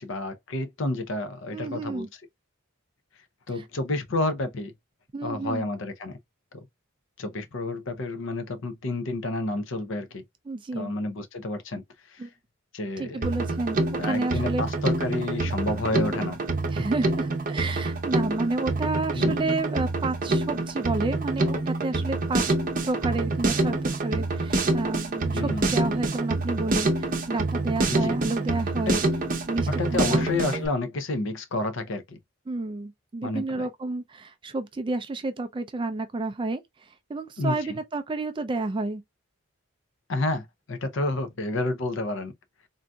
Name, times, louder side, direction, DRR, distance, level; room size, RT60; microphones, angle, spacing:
voice 1, 0.0-2.1 3.5-4.7 5.2-6.2 6.5-6.7 7.2-10.2 10.7-11.8 12.1-12.3 12.7-13.2 14.0-16.4 19.1-19.3 25.3-25.8 27.9-28.2 28.7-28.9 29.8-32.2 33.2-33.7 37.4-37.8 40.1-42.3, left 2 dB, 60° left, 0.6 m, -30 dB
voice 2, 1.5-2.1 5.1-5.7 10.5-10.9 12.2-12.3 13.0-14.7 16.7-22.4 22.8-29.0 29.5-30.2 32.5-36.6 37.1-39.0, right 2 dB, 25° right, 0.3 m, -30 dB
Drum kit, 13.2-30.7, right 2 dB, 40° right, 0.7 m, -26 dB
3.8 x 2.6 x 2.2 m
head